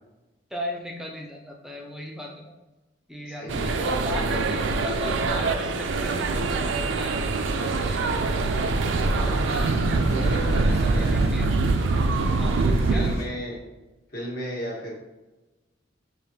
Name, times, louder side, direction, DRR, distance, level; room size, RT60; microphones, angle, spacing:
voice 1, 0.5-2.5 3.1-7.4 7.7-8.5 8.9-9.7 10.6-11.5 12.3-12.6 12.9-13.1, left 1 dB, ahead, -1 dB, 0.5 m, -37 dB
voice 2, 3.3-3.9 9.1-9.4 10.1-11.1 12.6-13.6 14.1-14.9, right 1 dB, 50° left, -3 dB, 1.3 m, -34 dB
sound 1, 3.5-13.2, right 3 dB, 70° right, 0.4 m, -24 dB
sound 2, 7.3-13.2, equal, 15° left, 1.4 m, -40 dB
6.4 x 2.6 x 2.7 m, 1.1 s
head